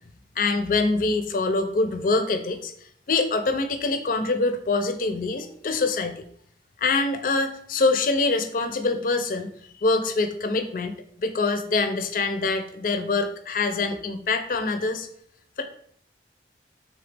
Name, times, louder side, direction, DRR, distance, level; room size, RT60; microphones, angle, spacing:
voice 1, 0.4-2.7 3.1-6.3 6.8-9.5 9.8-15.1 15.6-15.7, left 3 dB, 50° left, 9 dB, 0.5 m, -24 dB
3.8 x 3.5 x 3.3 m, 0.65 s
head